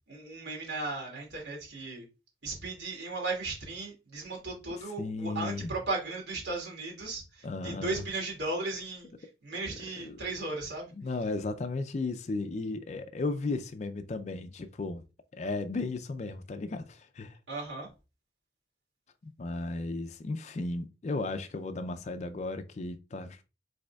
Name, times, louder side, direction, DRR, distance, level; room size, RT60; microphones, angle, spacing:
voice 1, 0.1-2.0 2.4-9.1 9.4-10.9 17.5-17.9, right 3 dB, 80° right, 2.4 m, -36 dB
voice 2, 5.0-5.7 7.4-8.0 10.0-10.2 10.9-15.0 15.3-17.4 19.2-23.4, left 3 dB, 40° left, 0.4 m, -35 dB
5.1 x 4.1 x 2.3 m
head